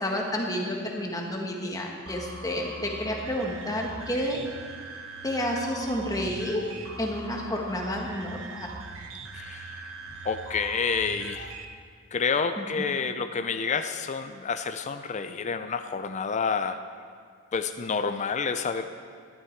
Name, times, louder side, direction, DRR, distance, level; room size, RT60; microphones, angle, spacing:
voice 1, 0.0-4.4 5.2-6.6 7.0-8.7 12.6-12.8, equal, 15° left, 0 dB, 1.5 m, -30 dB
sound 1, 2.1-11.7, right 3 dB, 65° right, 0.9 m, -41 dB
voice 2, 9.3-9.9 10.2-11.5 12.1-16.8 17.5-18.8, left 5 dB, 35° left, 8 dB, 0.4 m, -29 dB
13.0 x 11.5 x 4.6 m, 2.1 s
head